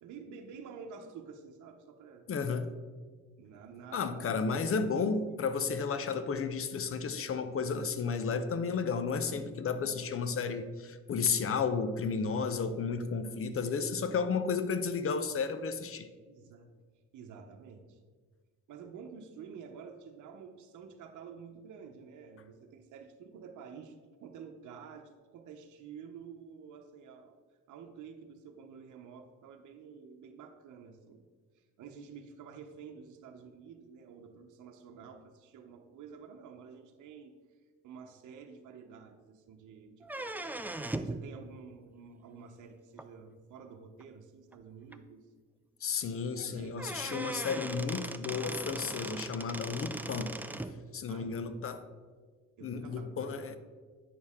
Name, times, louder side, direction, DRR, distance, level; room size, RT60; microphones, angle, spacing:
voice 1, 0.0-2.3 3.4-4.4 4.6-5.4 13.4-13.8 16.3-16.7 17.1-18.0 18.7-27.4 27.7-31.2 31.5-37.4 37.8-40.5 40.8-45.3 46.3-46.9 51.1-51.5 52.6-53.4, right 6 dB, 75° right, 3 dB, 0.9 m, -50 dB
voice 2, 2.3-2.7 3.9-16.1 45.8-50.4 50.9-51.8 52.6-53.6, left 5 dB, 45° left, 11 dB, 0.7 m, -33 dB
sound 1, 40.0-41.2 43.0-43.1 44.0-44.1 44.5-44.6 44.9-45.0 46.4-46.5 46.8-50.7, right 2 dB, 5° right, 0.4 m, -39 dB
9.3 x 6.4 x 3.6 m, 1.5 s
cardioid pair, 90°, 30 cm